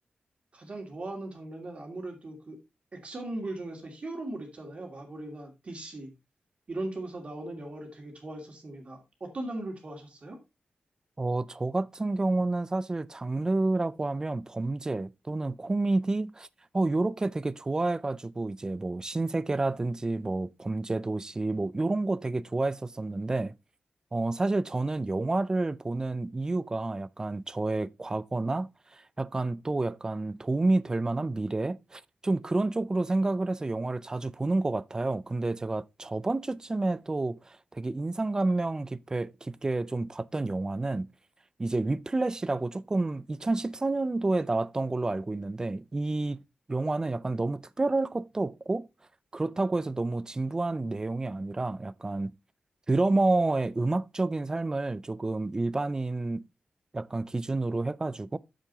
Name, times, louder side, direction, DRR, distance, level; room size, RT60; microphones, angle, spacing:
voice 1, 0.5-2.6 2.9-6.1 6.7-10.4, right 2 dB, 40° right, 2.4 m, -39 dB
voice 2, 11.2-16.5 16.7-23.5 24.1-41.1 41.6-46.4 46.7-48.9 49.3-52.4 52.9-56.4 56.9-58.4, right 2 dB, 20° right, 0.3 m, -29 dB
8.7 x 7.5 x 2.8 m
wide cardioid pair, 135°, 3 cm